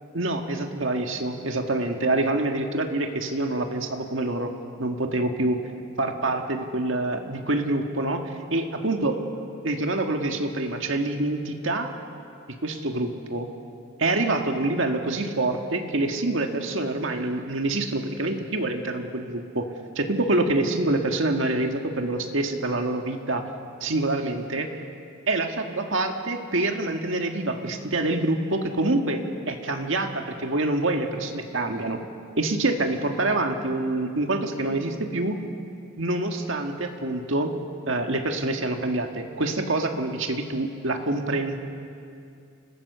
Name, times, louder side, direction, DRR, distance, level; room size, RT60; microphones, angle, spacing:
voice 1, 0.1-4.5 4.8-5.6 6.0-9.2 9.6-11.9 12.6-13.5 14.0-19.6 20.0-23.4 23.8-24.8 25.3-29.2 29.5-32.0 32.4-35.4 36.0-37.5 37.9-41.6, right 2 dB, 70° right, 4 dB, 1.8 m, -26 dB
29.5 x 16.0 x 6.8 m, 2.4 s
head